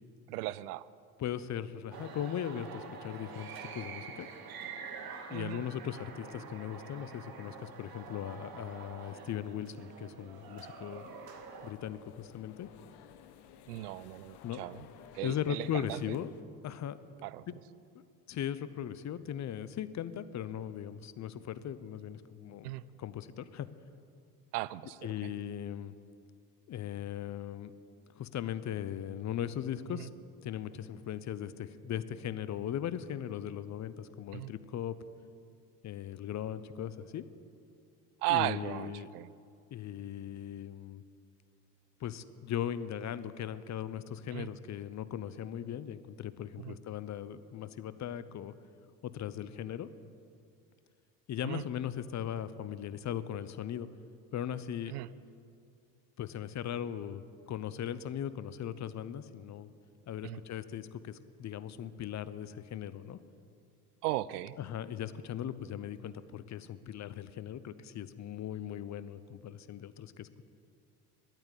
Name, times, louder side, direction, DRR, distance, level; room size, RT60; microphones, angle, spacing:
voice 1, 0.3-0.9 5.3-5.6 13.7-14.9 15.1-16.0 17.2-17.5 22.6-22.8 24.5-25.3 30.0-30.1 34.3-34.5 38.2-39.3 44.3-44.5 46.6-46.8 51.4-51.6 54.9-55.1 60.2-60.4 64.0-64.6, right 17 dB, 75° right, 19 dB, 0.5 m, -36 dB
voice 2, 1.2-4.3 5.3-11.0 11.6-12.7 14.4-14.7 15.2-16.3 16.6-17.0 18.3-22.7 23.0-23.7 25.0-25.9 26.7-27.7 28.2-30.1 30.4-34.9 35.8-37.2 38.3-39.1 39.7-41.0 42.0-48.5 49.1-49.9 51.3-53.9 54.3-55.0 56.2-57.2 57.5-59.7 60.1-63.2 64.6-70.5, left 10 dB, 35° left, 15 dB, 0.7 m, -38 dB
sound 1, 1.9-11.7, right 5 dB, 50° right, 1.8 m, -46 dB
sound 2, 10.4-16.4, left 9 dB, 55° left, 1.0 m, -56 dB
11.0 x 8.9 x 9.8 m, 2.4 s
hypercardioid pair, 65°, 46 cm